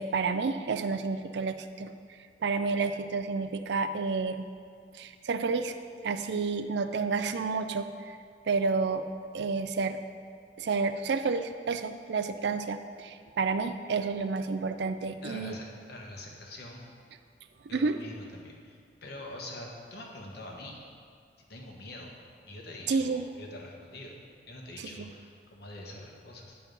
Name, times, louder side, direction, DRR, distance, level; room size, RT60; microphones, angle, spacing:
voice 1, 0.0-4.5 4.9-5.7 6.0-8.2 8.5-9.0 9.3-10.0 10.6-15.6 17.7-18.0 22.9-23.3 24.8-24.9, right 4 dB, 65° right, 9 dB, 0.4 m, -30 dB
voice 2, 15.2-16.9 17.7-20.8 21.5-22.1 22.5-24.1 24.5-26.6, left 1 dB, 65° left, -1 dB, 1.3 m, -44 dB
9.4 x 4.5 x 5.4 m, 2.2 s
head